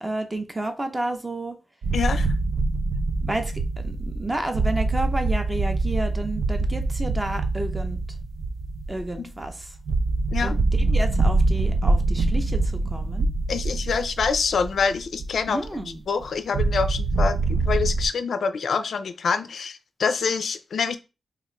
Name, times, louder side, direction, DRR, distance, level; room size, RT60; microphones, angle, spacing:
voice 1, 0.0-1.6 3.2-8.0 8.9-9.7 10.4-12.6 12.9-13.3 15.5-16.0, right 1 dB, 15° right, 6 dB, 0.5 m, -31 dB
sound 1, 1.8-15.9 16.2-16.3 16.5-18.1, right 3 dB, 70° right, 0.4 m, -24 dB
voice 2, 1.9-2.3 9.2-9.3 10.3-10.6 13.5-21.0, left 5 dB, 60° left, 11 dB, 0.3 m, -26 dB
2.9 x 2.4 x 4.3 m, 0.29 s
wide cardioid pair, 175°, 0 cm